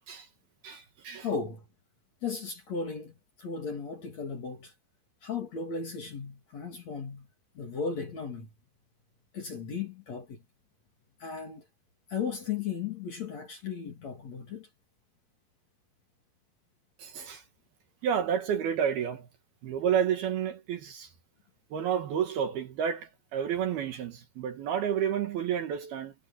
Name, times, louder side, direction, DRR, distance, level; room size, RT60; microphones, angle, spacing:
voice 1, 0.6-1.3 17.0-17.4 18.0-19.3 19.6-21.1 21.7-26.1, right 8 dB, 60° right, 3.0 m, -30 dB
voice 2, 1.2-1.6 2.2-3.1 3.4-4.7 5.2-7.3 7.6-8.5 9.3-10.4 11.2-11.6 12.1-14.7, left 5 dB, 45° left, 2.9 m, -35 dB
omnidirectional pair, 5.6 m